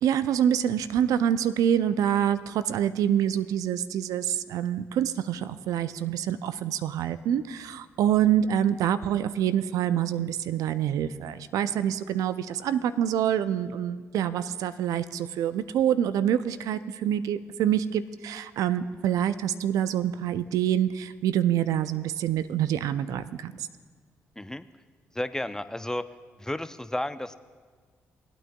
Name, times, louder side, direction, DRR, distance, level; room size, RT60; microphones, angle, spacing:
voice 1, 0.0-23.5, right 10 dB, 75° right, 14 dB, 0.4 m, -26 dB
voice 2, 24.4-24.7 25.1-26.1 26.4-27.4, left 1 dB, 10° left, 13 dB, 0.4 m, -32 dB
19.5 x 9.0 x 2.3 m, 1.5 s
hypercardioid pair, 50°, 6 cm